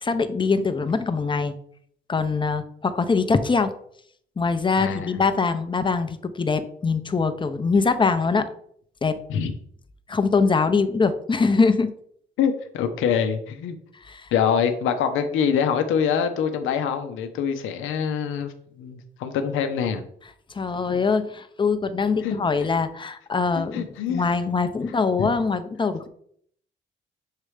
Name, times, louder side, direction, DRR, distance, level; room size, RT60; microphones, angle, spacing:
voice 1, 0.0-1.5 2.1-3.7 4.4-8.5 9.0-9.2 10.1-11.9 14.0-14.3 20.5-26.1, left 4 dB, 25° left, 10 dB, 0.7 m, -23 dB
voice 2, 4.8-5.1 9.3-9.5 12.4-13.8 14.3-20.0 20.9-21.0 22.2-22.4 23.6-24.3 25.2-25.3, left 7 dB, 85° left, 8 dB, 0.7 m, -25 dB
6.5 x 3.2 x 4.9 m, 0.64 s
cardioid pair, 90°, 20 cm